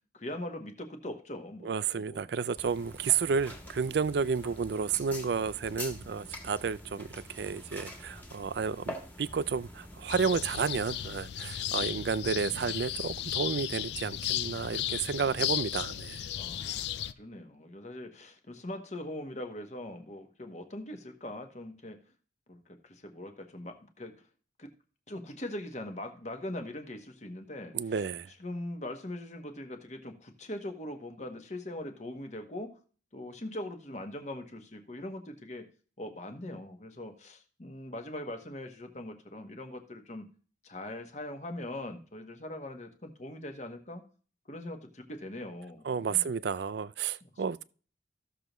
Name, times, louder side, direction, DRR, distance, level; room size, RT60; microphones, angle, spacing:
voice 1, 0.1-2.3 11.7-12.0 12.4-12.6 16.4-22.0 22.5-24.2 24.6-24.7 25.1-32.8 33.1-35.7 36.0-40.3 40.6-44.0 44.5-46.3 47.2-47.3, left 1 dB, 40° left, 1.2 m, -41 dB
voice 2, 1.6-16.2 27.7-28.3 45.9-47.6, right 6 dB, 60° right, 0.4 m, -31 dB
sound 1, 2.6-11.2, left 1 dB, 10° left, 1.6 m, -45 dB
sound 2, 10.1-17.1, left 11 dB, 65° left, 0.4 m, -35 dB
14.5 x 6.7 x 3.0 m
head